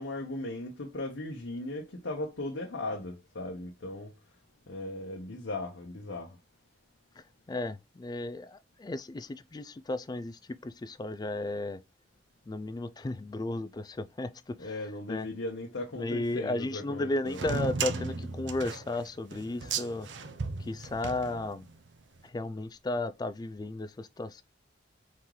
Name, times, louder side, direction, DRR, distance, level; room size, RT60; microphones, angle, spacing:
voice 1, 0.0-4.1 4.7-6.4 14.6-17.4, left 2 dB, 75° left, 0.9 m, -37 dB
voice 2, 7.2-11.8 12.5-14.8 15.1-15.3 16.0-20.1 20.6-21.7 22.2-24.4, left 2 dB, 20° left, 0.3 m, -34 dB
sound 1, 17.3-21.9, right 4 dB, 70° right, 0.6 m, -35 dB
4.3 x 3.7 x 3.1 m
head